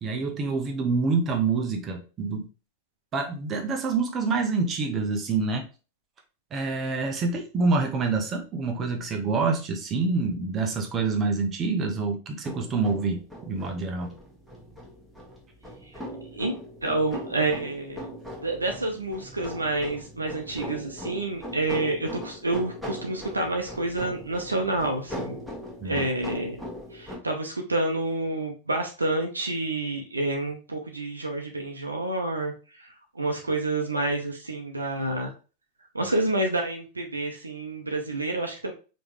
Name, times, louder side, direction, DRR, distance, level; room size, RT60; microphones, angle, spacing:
voice 1, 0.0-2.5 3.1-5.6 6.5-13.2 13.5-14.1 25.8-26.0, right 4 dB, 25° right, 3 dB, 1.0 m, -26 dB
sound 1, 12.4-27.2, equal, ahead, 1.4 m, -40 dB
voice 2, 16.8-18.0 18.4-25.4 25.8-26.6 26.9-32.5 32.8-35.3 35.9-38.7, right 2 dB, 80° right, 2 dB, 0.7 m, -28 dB
5.0 x 3.2 x 3.0 m, 0.33 s
figure-of-eight pair, 90°, 0 cm